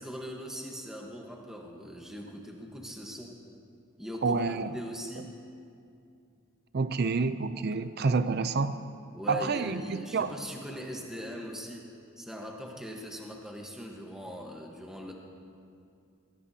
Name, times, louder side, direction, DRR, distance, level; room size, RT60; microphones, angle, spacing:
voice 1, 0.0-3.4 4.0-5.4 9.1-11.9 12.2-15.1, equal, ahead, 0 dB, 1.1 m, -40 dB
voice 2, 4.2-4.7 5.2-5.3 6.7-8.8 9.3-10.3, right 4 dB, 45° right, 12 dB, 0.4 m, -28 dB
20.0 x 18.5 x 2.8 m, 2.5 s
head